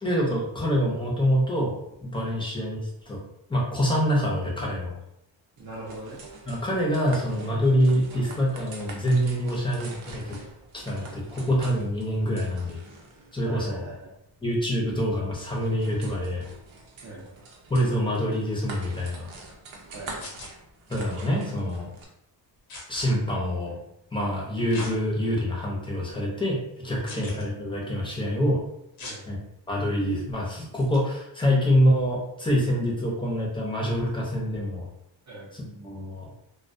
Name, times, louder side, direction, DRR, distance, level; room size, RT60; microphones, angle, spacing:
voice 1, 0.0-3.2 3.5-4.9 6.5-10.4 10.7-12.8 13.3-13.8 14.4-16.5 17.7-19.3 20.9-21.9 22.9-23.7 24.1-28.6 29.3-29.4 29.7-34.9 35.5-36.3, equal, 10° left, -4 dB, 0.6 m, -26 dB
voice 2, 5.6-6.2 13.4-14.1 17.0-17.3 19.9-20.3 23.3-23.8 27.1-27.3 29.0-29.3 35.3-35.5, right 2 dB, 35° right, -5 dB, 0.6 m, -41 dB
sound 1, 5.6-22.1, right 3 dB, 80° right, 0.7 m, -45 dB
sound 2, 20.2-20.5 22.7-23.1 24.7-24.9 25.5-25.6 27.1-27.4 29.0-29.2 30.8-31.0, left 2 dB, 75° left, 0.9 m, -39 dB
2.2 x 2.2 x 2.5 m, 0.80 s
wide cardioid pair, 125°, 48 cm